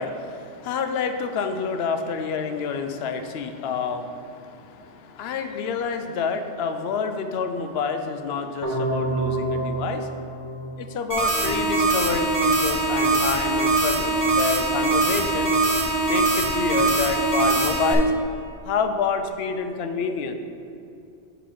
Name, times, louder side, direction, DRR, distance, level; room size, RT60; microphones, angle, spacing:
voice 1, 0.0-10.2 10.8-15.5 16.1-18.1 18.6-20.3, left 5 dB, 70° left, 7 dB, 0.8 m, -28 dB
sound 1, 8.6-11.6, right 2 dB, 20° left, 1.7 m, -28 dB
sound 2, 11.1-17.9, right 2 dB, 50° right, 1.2 m, -22 dB
7.6 x 4.1 x 5.6 m, 2.5 s
omnidirectional pair, 1.2 m